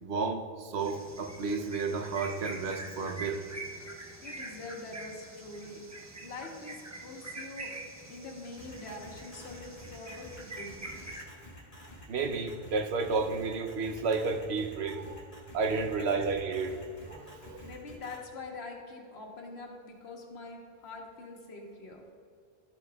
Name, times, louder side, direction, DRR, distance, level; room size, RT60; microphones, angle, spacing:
voice 1, 0.0-3.4 12.1-16.7 17.1-17.7, right 4 dB, 80° right, 4 dB, 1.0 m, -32 dB
sound 1, 0.8-11.2, right 2 dB, 20° right, 0.8 m, -45 dB
voice 2, 4.2-5.9 6.2-7.8 8.1-10.8 15.9-16.3 17.6-22.0, left 3 dB, 85° left, 1 dB, 1.4 m, -44 dB
sound 2, 8.6-18.2, equal, 60° left, 2.1 m, -50 dB
12.0 x 8.3 x 2.3 m, 2.4 s
omnidirectional pair, 1.1 m